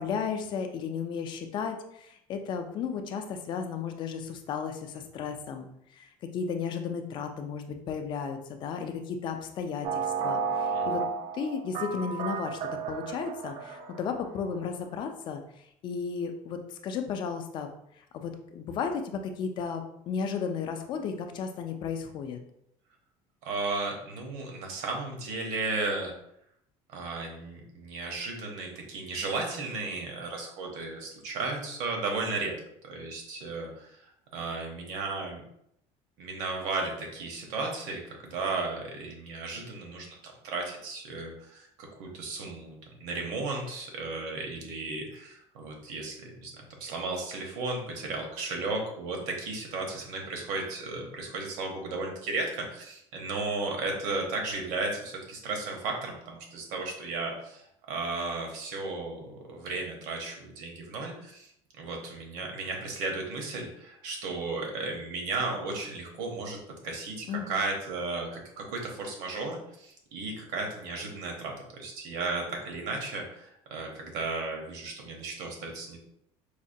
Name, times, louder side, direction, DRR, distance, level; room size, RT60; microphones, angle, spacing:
voice 1, 0.0-5.7 6.0-11.0 11.3-15.4 15.8-17.7 18.1-22.4 67.3-67.6, left 6 dB, 35° left, 6 dB, 0.4 m, -34 dB
sound 1, 9.8-14.3, right 5 dB, 55° right, 0.4 m, -32 dB
voice 2, 23.4-26.1 26.9-32.5 32.8-35.4 36.2-40.2 40.4-46.5 46.8-61.5 61.8-66.6 66.8-76.0, right 3 dB, 70° right, 1 dB, 1.0 m, -34 dB
4.8 x 2.1 x 2.6 m, 0.75 s
cardioid pair, 175°, 13 cm